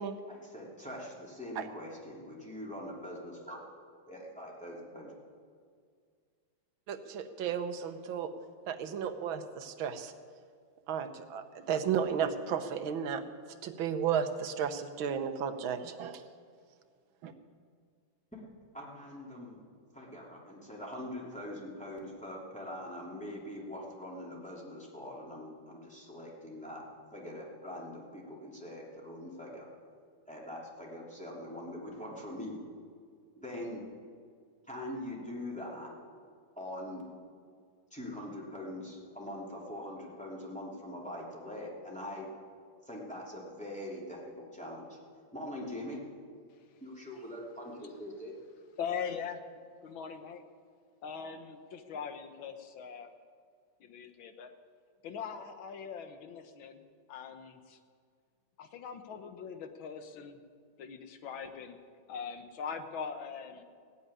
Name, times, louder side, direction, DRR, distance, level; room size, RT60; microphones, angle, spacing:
voice 1, 0.3-3.6 4.1-5.1 18.3-18.4 18.7-19.6 19.9-26.8 27.1-29.7 30.3-32.6 33.3-33.8 34.7-35.9 36.6-37.0 37.9-42.3 42.8-45.0 45.3-46.0 46.8-48.3, left 1 dB, 5° left, -4 dB, 3.0 m, -43 dB
voice 2, 6.9-8.3 8.7-10.1 10.9-13.2 13.6-16.2 17.2-17.3, right 7 dB, 85° right, 9 dB, 1.7 m, -33 dB
voice 3, 48.8-49.4 49.8-50.4 51.0-53.1 53.8-54.5 55.0-56.8 57.1-57.8 58.6-60.4 60.8-61.8 62.1-63.6, left 6 dB, 80° left, 8 dB, 1.9 m, -41 dB
16.5 x 8.4 x 9.8 m, 2.1 s
omnidirectional pair, 2.1 m